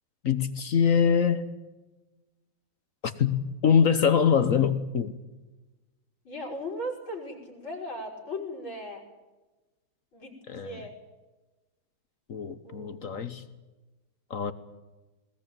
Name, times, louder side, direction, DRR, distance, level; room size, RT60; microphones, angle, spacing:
voice 1, 0.2-1.5 3.0-5.1 10.5-10.8 12.3-13.4 14.3-14.5, left 7 dB, 50° left, 12 dB, 1.3 m, -24 dB
voice 2, 6.3-9.0 10.1-10.3 10.6-10.9 12.6-13.0, left 1 dB, 80° left, 2 dB, 5.7 m, -37 dB
21.0 x 20.0 x 9.0 m, 1.1 s
omnidirectional pair, 2.2 m